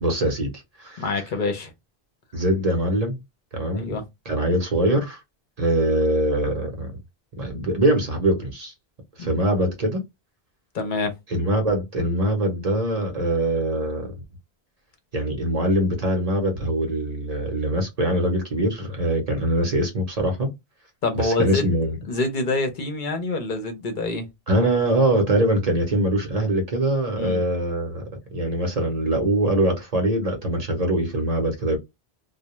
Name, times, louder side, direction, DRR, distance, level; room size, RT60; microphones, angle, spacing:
voice 1, 0.0-1.1 2.3-3.2 3.5-4.0 4.3-5.2 5.6-6.9 7.4-8.7 9.2-10.0 11.3-14.1 15.1-20.5 21.1-22.0 24.5-28.0 28.3-31.8, right 1 dB, 45° right, 0.7 m, -23 dB
voice 2, 1.0-1.7 3.7-4.0 9.2-9.3 10.7-11.1 21.0-21.7 22.1-24.3 27.2-27.4, left 2 dB, 55° left, 0.7 m, -26 dB
2.2 x 2.1 x 2.9 m
omnidirectional pair, 1.1 m